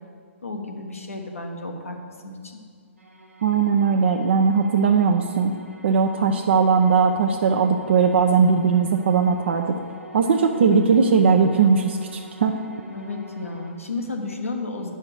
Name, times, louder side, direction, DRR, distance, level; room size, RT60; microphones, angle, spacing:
voice 1, 0.4-2.0 2.2-2.6 12.9-14.9, left 3 dB, 85° left, 1 dB, 1.4 m, -32 dB
sound 1, 3.0-13.7, equal, 90° right, 1.2 m, -43 dB
voice 2, 3.4-5.5 5.8-9.7 10.1-12.5, right 5 dB, 55° right, 3 dB, 0.6 m, -19 dB
9.6 x 5.6 x 6.4 m, 2.1 s
figure-of-eight pair, 125°, 7 cm